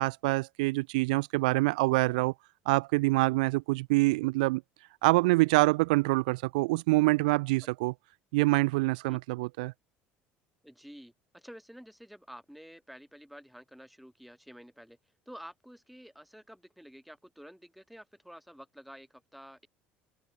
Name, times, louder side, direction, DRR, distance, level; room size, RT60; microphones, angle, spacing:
voice 1, 0.0-2.3 2.7-4.6 5.0-7.9 8.3-9.7, right 23 dB, 90° right, 0.4 m, -25 dB
voice 2, 10.6-15.0 15.3-19.7, equal, ahead, 3.9 m, -50 dB
supercardioid pair, 85°, 4 cm